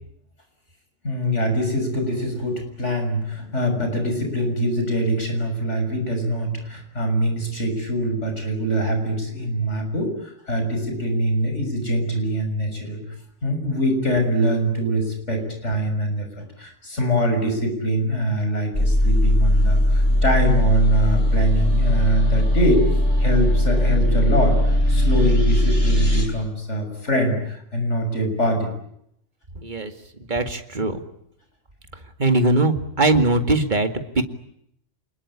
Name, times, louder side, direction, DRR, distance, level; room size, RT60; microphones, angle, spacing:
voice 1, 1.0-13.0 13.4-16.3 16.6-22.9 23.2-28.7, equal, 70° left, 5 dB, 7.0 m, -23 dB
sound 1, 18.7-26.2, left 1 dB, 50° left, 8.0 m, -19 dB
voice 2, 30.3-31.0 32.2-34.2, right 2 dB, 40° right, 7 dB, 2.3 m, -20 dB
28.0 x 21.0 x 9.9 m, 0.75 s
omnidirectional pair, 1.3 m